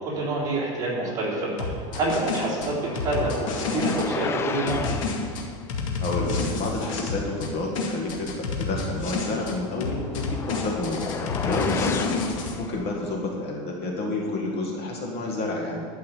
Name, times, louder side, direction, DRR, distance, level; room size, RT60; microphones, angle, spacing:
voice 1, 0.0-4.9 11.8-11.9, right 2 dB, 20° right, -6 dB, 3.6 m, -27 dB
sound 1, 1.6-4.1 4.7-7.5 7.8-9.6 9.8-12.5, left 4 dB, 85° left, 2.1 m, -29 dB
sound 2, 1.9-5.5 9.4-13.2, left 6 dB, 15° left, 0.4 m, -33 dB
voice 2, 6.0-8.3 8.6-11.0 11.4-12.2 12.6-15.9, left 2 dB, 40° left, -1 dB, 1.8 m, -29 dB
12.0 x 5.6 x 8.4 m, 2.1 s
supercardioid pair, 155°, 16 cm